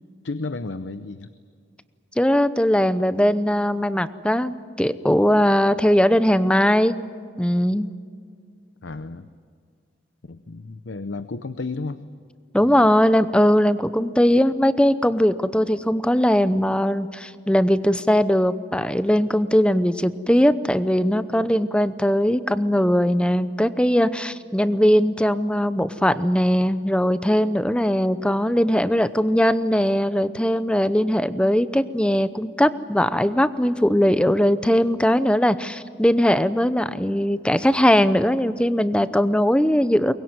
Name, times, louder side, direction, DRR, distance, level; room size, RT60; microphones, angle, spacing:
voice 1, 0.2-1.3 8.8-9.3 10.2-12.0 12.6-12.9, left 3 dB, 85° left, 12 dB, 0.8 m, -32 dB
voice 2, 2.2-7.0 7.4-7.9 12.5-40.1, equal, 5° left, 13 dB, 0.7 m, -20 dB
23.5 x 21.0 x 9.6 m, 2.2 s
head